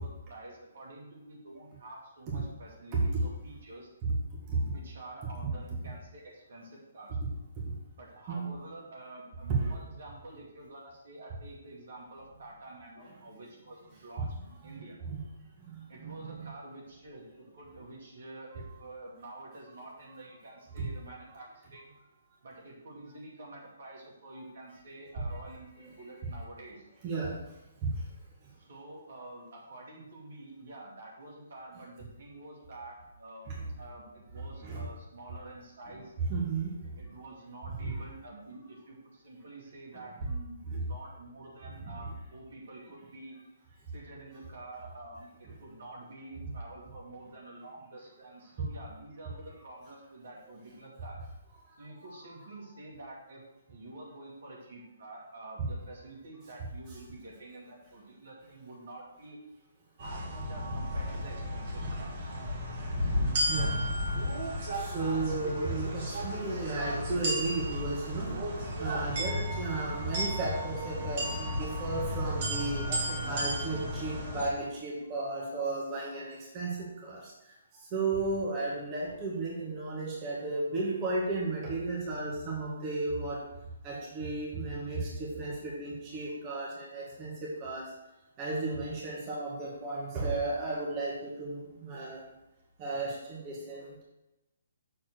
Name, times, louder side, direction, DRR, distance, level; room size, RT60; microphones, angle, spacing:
voice 1, 0.0-3.9 4.7-7.2 8.0-15.0 15.9-21.9 22.4-26.8 28.6-36.1 37.0-43.3 43.9-51.2 51.8-53.4 53.7-59.4 60.0-62.3, right 2 dB, 60° right, -3 dB, 2.6 m, -48 dB
voice 2, 16.0-16.5 20.8-20.9 27.0-27.4 33.5-33.6 34.6-34.8 36.2-36.7 37.8-38.0 40.7-40.8 41.8-41.9 52.0-52.3 63.5-63.7 64.0-64.1 64.7-72.9 73.2-77.2 77.9-83.4 83.8-87.9 88.4-92.2 92.8-94.0, right 3 dB, 30° right, -4 dB, 2.0 m, -34 dB
sound 1, 60.0-74.5, equal, 45° right, 2.7 m, -33 dB
6.8 x 4.4 x 6.3 m, 0.93 s
figure-of-eight pair, 135°, 0 cm